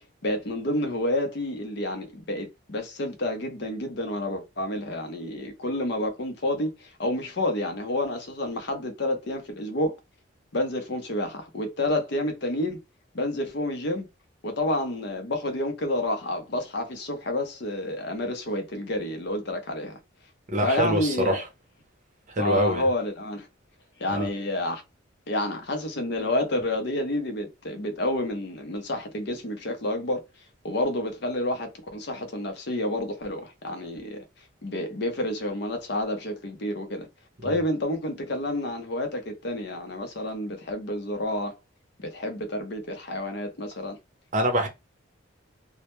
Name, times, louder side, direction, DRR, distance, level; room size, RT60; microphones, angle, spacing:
voice 1, 0.2-10.0 10.5-12.8 13.1-14.1 14.4-20.0 20.6-21.4 22.4-23.5 24.0-24.8 25.3-30.2 30.6-34.2 34.6-37.1 37.4-41.6 42.0-44.0, left 1 dB, 55° left, 0.6 m, -29 dB
voice 2, 20.5-21.4 22.4-22.9 24.1-24.3 37.4-37.6 44.3-44.7, equal, 35° right, 0.6 m, -25 dB
2.1 x 2.1 x 2.9 m
head